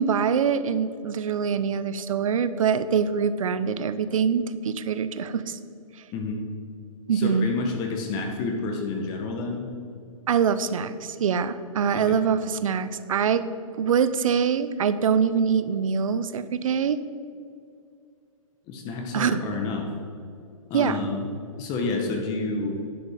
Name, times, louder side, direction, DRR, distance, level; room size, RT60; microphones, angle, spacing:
voice 1, 0.0-5.6 7.1-7.5 10.3-13.4 13.8-17.0 19.1-19.4 20.7-21.0, right 7 dB, 70° right, 13 dB, 0.6 m, -24 dB
voice 2, 7.1-9.7 11.9-12.2 18.7-19.9 20.7-21.2 21.6-22.8, left 3 dB, 20° left, 3 dB, 1.0 m, -29 dB
10.5 x 5.2 x 4.9 m, 2.4 s
hypercardioid pair, 150°, 18 cm